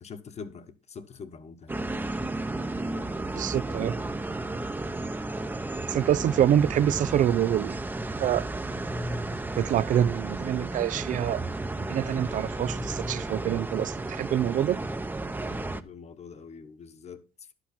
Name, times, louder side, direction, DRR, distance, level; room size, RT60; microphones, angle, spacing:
voice 1, 0.0-1.8 15.4-17.5, left 5 dB, 40° left, 1.4 m, -44 dB
sound 1, 1.7-15.8, right 2 dB, 10° right, 0.8 m, -33 dB
voice 2, 3.3-4.0 5.9-7.8 8.2-8.4 9.6-11.4 11.8-14.8, right 10 dB, 50° right, 0.5 m, -26 dB
11.5 x 8.2 x 4.3 m
cardioid pair, 110°, 17 cm